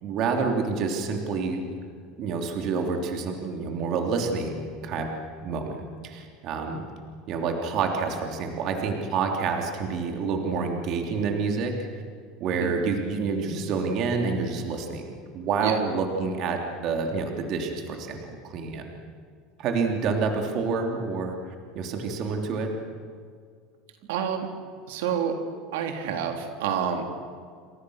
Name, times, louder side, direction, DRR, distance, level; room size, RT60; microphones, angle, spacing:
voice 1, 0.0-1.6 2.2-6.8 7.3-11.7 12.4-18.8 19.6-22.7, right 4 dB, 40° right, 3 dB, 3.2 m, -28 dB
voice 2, 24.1-24.5 24.9-25.4 25.7-27.0, right 8 dB, 85° right, 4 dB, 3.5 m, -28 dB
28.5 x 26.5 x 6.5 m, 2.1 s
cardioid pair, 170°, 0 cm